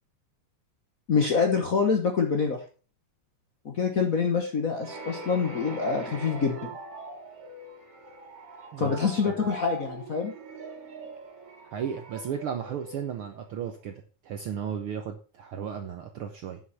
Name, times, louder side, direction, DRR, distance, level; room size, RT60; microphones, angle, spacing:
voice 1, 1.1-2.6 3.6-6.7 8.8-10.3, left 5 dB, 90° left, 3 dB, 0.7 m, -26 dB
sound 1, 4.8-13.6, right 2 dB, 50° right, 3.0 m, -42 dB
voice 2, 11.7-16.6, right 8 dB, 70° right, 6 dB, 1.3 m, -35 dB
9.0 x 7.1 x 5.8 m, 0.36 s
omnidirectional pair, 3.5 m